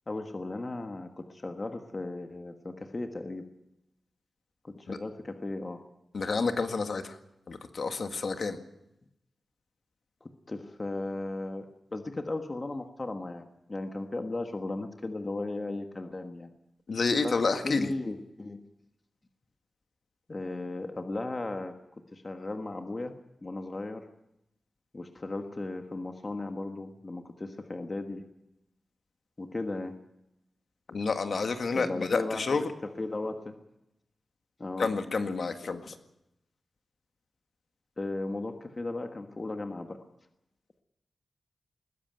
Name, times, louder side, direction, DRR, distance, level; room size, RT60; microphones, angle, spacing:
voice 1, 0.1-3.5 4.6-5.8 10.2-11.7 11.9-16.5 17.2-17.3 17.6-18.6 20.3-21.7 22.1-23.1 23.4-24.1 24.9-28.2 29.4-30.0 31.7-33.5 34.6-34.9 38.0-40.0, left 2 dB, 25° left, 6 dB, 1.4 m, -36 dB
voice 2, 6.1-7.2 7.5-8.6 16.9-17.9 30.9-32.7 34.8-36.0, left 4 dB, 50° left, 7 dB, 1.8 m, -29 dB
20.5 x 16.5 x 9.3 m, 0.87 s
wide cardioid pair, 175°, 0 cm